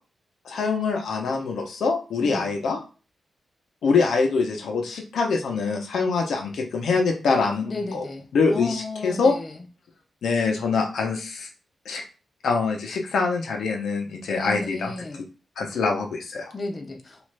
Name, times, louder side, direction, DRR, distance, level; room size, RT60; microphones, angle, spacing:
voice 1, 0.4-2.8 3.8-8.0 8.3-9.4 10.2-11.5 11.9-12.0 12.4-14.9 15.6-16.5, left 4 dB, 85° left, 2 dB, 0.7 m, -24 dB
voice 2, 2.2-2.6 7.6-9.6 14.3-15.2 16.5-17.3, left 2 dB, 35° left, 2 dB, 0.6 m, -33 dB
3.0 x 2.4 x 3.2 m, 0.35 s
wide cardioid pair, 105°, 0 cm